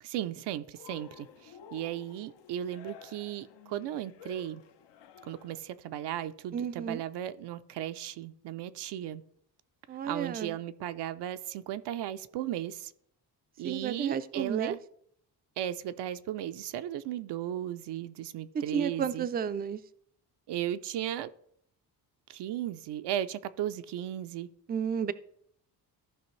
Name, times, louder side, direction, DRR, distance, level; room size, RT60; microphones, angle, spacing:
voice 1, 0.0-4.6 5.2-9.2 10.0-12.9 13.6-14.8 15.6-19.3 20.5-21.3 22.3-24.5, right 11 dB, 75° right, 0.5 m, -36 dB
Cheering, 0.7-5.7, left 8 dB, 80° left, 0.8 m, -52 dB
voice 2, 6.5-7.0 9.9-10.6 13.6-14.8 18.5-19.8 24.7-25.1, right 7 dB, 25° right, 0.3 m, -32 dB
14.5 x 5.2 x 3.1 m
cardioid pair, 125°, 41 cm